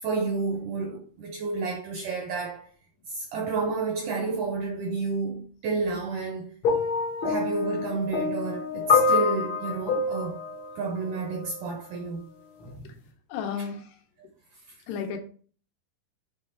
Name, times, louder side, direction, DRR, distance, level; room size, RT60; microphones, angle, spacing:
voice 1, 0.0-2.7 3.1-6.5 7.2-10.4 10.8-12.2 14.2-14.3, right 4 dB, 75° right, 1.9 m, -30 dB
sound 1, 6.6-11.7 12.6-12.8, left 4 dB, 65° left, 1.2 m, -27 dB
voice 2, 13.3-13.9 14.9-15.2, left 7 dB, 85° left, 3.1 m, -32 dB
7.8 x 3.3 x 4.4 m
omnidirectional pair, 4.6 m